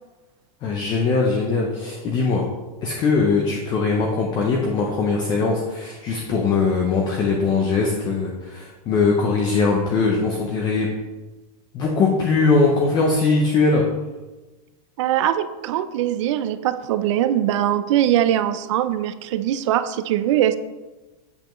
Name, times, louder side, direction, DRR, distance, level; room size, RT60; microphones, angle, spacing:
voice 1, 0.6-2.4 2.8-10.9 11.7-13.8, left 4 dB, 20° left, 0 dB, 0.6 m, -21 dB
voice 2, 15.0-20.6, right 11 dB, 45° right, 12 dB, 0.4 m, -21 dB
7.8 x 6.7 x 3.1 m, 1.2 s
supercardioid pair, 175°, 21 cm